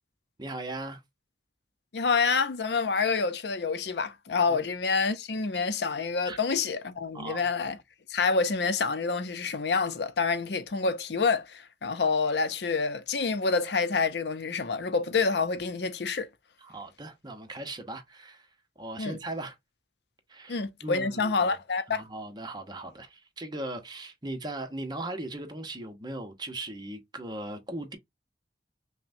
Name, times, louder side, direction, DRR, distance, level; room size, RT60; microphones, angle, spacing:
voice 1, 0.4-1.0 4.5-4.6 6.3-6.4 7.1-7.4 16.6-18.5 18.8-19.6 20.3-21.3 21.9-28.0, right 2 dB, 25° right, 0.8 m, -38 dB
voice 2, 1.9-7.8 8.1-16.3 19.0-19.2 20.5-22.0, left 4 dB, 75° left, 0.6 m, -27 dB
5.7 x 2.2 x 2.6 m
head